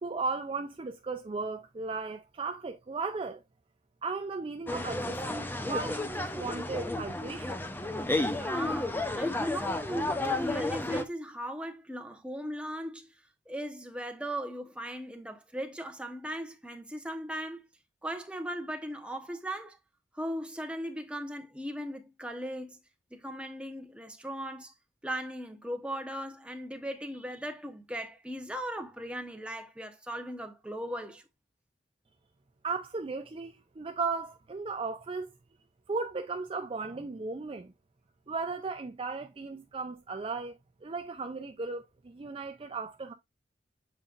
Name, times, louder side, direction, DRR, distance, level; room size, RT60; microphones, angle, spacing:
voice 1, 0.0-3.4 4.0-7.6 32.6-35.3 35.9-37.7 38.3-40.5 40.8-43.1, right 4 dB, 30° right, 0.5 m, -36 dB
sound 1, 4.7-11.0, left 2 dB, 10° left, 0.7 m, -32 dB
voice 2, 8.2-13.1 13.5-17.7 18.0-19.8 20.1-22.8 23.1-24.7 25.0-31.2, equal, 5° right, 1.0 m, -38 dB
7.4 x 5.1 x 2.5 m
head